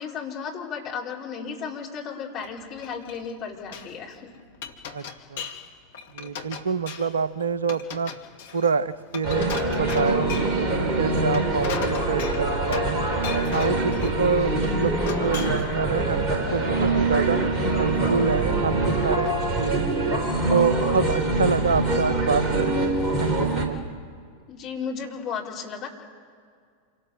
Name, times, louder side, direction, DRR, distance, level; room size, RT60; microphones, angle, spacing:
voice 1, 0.0-4.3 24.5-25.9, left 6 dB, 35° left, -1 dB, 4.4 m, -34 dB
Glass, 2.4-3.9 4.3-5.7 5.9-7.2 7.6-10.6 11.2-13.0 13.2-14.2 14.6-15.7, left 6 dB, 55° left, 2.0 m, -37 dB
voice 2, 6.1-8.1 8.5-13.1 13.5-16.2 16.5-17.4 17.8-19.9 20.5-22.9 23.2-23.8, right 5 dB, 70° right, 18 dB, 0.6 m, -26 dB
sound 1, 9.2-23.7, right 2 dB, 25° right, 4.0 m, -24 dB
27.0 x 18.5 x 7.8 m, 2.1 s
figure-of-eight pair, 90°, 0 cm